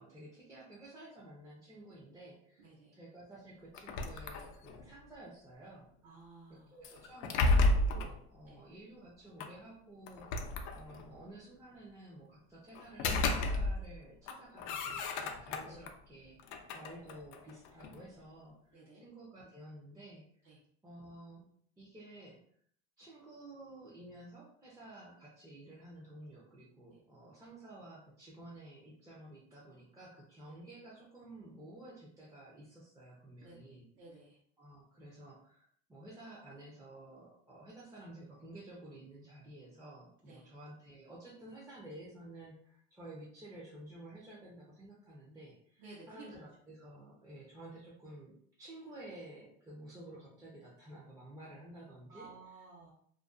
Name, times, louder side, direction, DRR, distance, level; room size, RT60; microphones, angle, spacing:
voice 1, 0.0-5.9 6.5-20.2 20.8-21.5 21.8-22.4 23.0-33.9 34.6-52.6, right 1 dB, 10° right, -6 dB, 0.5 m, -52 dB
voice 2, 2.6-3.0 6.0-6.8 8.5-8.6 15.6-15.8 18.7-19.0 20.4-20.6 26.9-27.0 30.4-30.6 33.4-34.4 40.3-40.5 45.8-46.3 52.1-52.9, right 3 dB, 60° right, -5 dB, 0.9 m, -55 dB
sound 1, 3.7-4.9 6.8-8.2 9.4-9.5 10.1-11.2 12.7-14.0 14.3-15.9 16.4-18.0, left 2 dB, 75° left, 0.5 m, -32 dB
2.5 x 2.2 x 2.4 m, 0.63 s
supercardioid pair, 120°, 33 cm